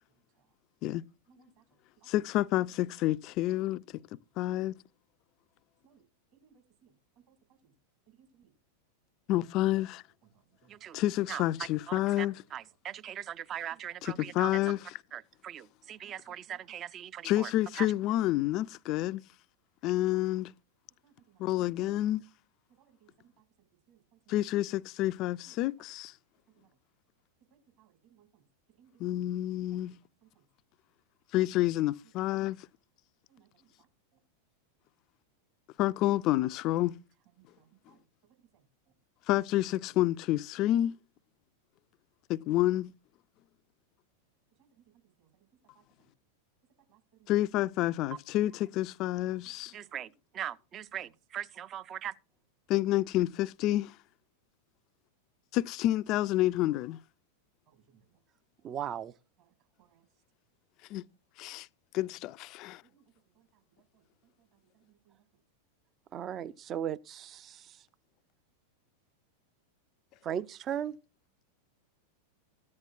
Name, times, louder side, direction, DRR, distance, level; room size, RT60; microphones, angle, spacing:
voice 1, 1.3-1.6 5.8-6.0 6.4-6.5 6.8-6.9 7.3-7.4 7.6-7.7 8.2-8.5 10.6-10.8 14.2-14.3 16.0-16.1 21.0-21.4 22.8-23.3 23.9-24.0 25.4-25.5 27.8-28.3 28.8-28.9 33.3-33.4 33.8-33.9 37.4-38.0 45.2-45.3 46.9-47.3 49.5-49.8 57.7-57.8 59.8-60.0 62.9-63.0 63.4-63.5 64.9-65.1, right 9 dB, 45° right, 2.0 m, -64 dB
voice 2, 2.1-4.0 4.4-4.7 9.3-10.0 10.9-12.4 14.3-14.8 17.2-19.2 19.8-20.5 21.4-22.2 24.3-26.1 29.0-30.0 31.3-32.6 35.8-36.9 39.3-40.9 42.3-42.9 47.3-49.7 52.7-53.9 55.5-57.0 60.9-61.0 61.4-61.7 61.9-62.8, left 15 dB, 40° left, 0.4 m, -29 dB
voice 3, 10.7-11.0 11.3-11.4 11.9-14.6 15.1-17.9 48.1-48.2 49.7-52.1 58.6-59.1 66.1-67.9 70.2-71.0, right 10 dB, 30° right, 0.5 m, -39 dB
14.0 x 9.6 x 2.4 m
figure-of-eight pair, 90°, 0 cm